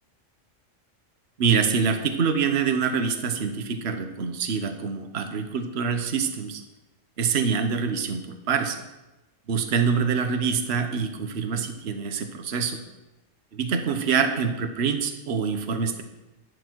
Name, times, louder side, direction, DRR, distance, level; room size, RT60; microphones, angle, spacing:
voice 1, 1.4-6.6 7.2-8.8 9.5-12.8 13.5-16.0, right 6 dB, 55° right, 7 dB, 1.2 m, -25 dB
11.5 x 11.0 x 4.6 m, 1.0 s
omnidirectional pair, 1.3 m